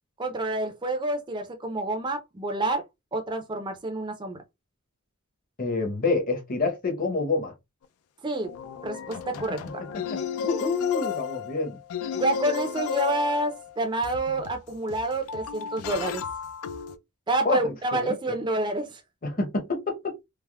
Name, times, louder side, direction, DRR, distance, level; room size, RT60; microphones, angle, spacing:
voice 1, 0.2-2.8 3.1-4.4 8.2-8.5 8.8-9.6 12.1-16.2 17.3-19.0, right 2 dB, 20° right, 0.4 m, -28 dB
voice 2, 5.6-7.5 10.1-11.8 17.4-18.2 19.2-20.0, left 3 dB, 40° left, 0.8 m, -27 dB
sound 1, 7.8-7.9 8.4-17.0, left 7 dB, 85° left, 0.4 m, -34 dB
3.3 x 2.0 x 2.2 m
head